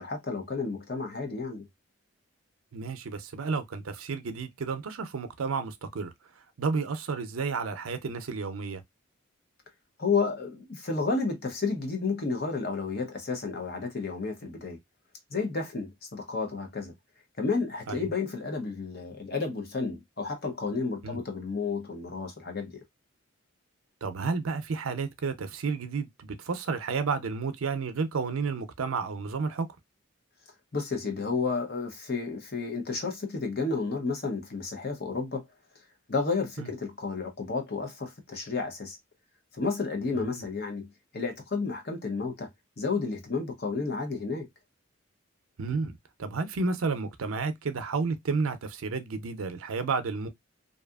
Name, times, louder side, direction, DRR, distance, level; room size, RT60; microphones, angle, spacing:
voice 1, 0.0-1.7 10.0-14.8 15.3-16.9 17.4-22.7 30.7-35.4 36.1-39.0 39.5-42.5 42.8-44.5, left 4 dB, 50° left, 0.8 m, -31 dB
voice 2, 2.7-6.1 6.6-8.8 17.9-18.1 21.0-21.2 24.0-29.7 36.6-36.7 40.1-40.4 45.6-50.3, right 4 dB, 85° right, 0.5 m, -31 dB
2.6 x 2.4 x 2.3 m
head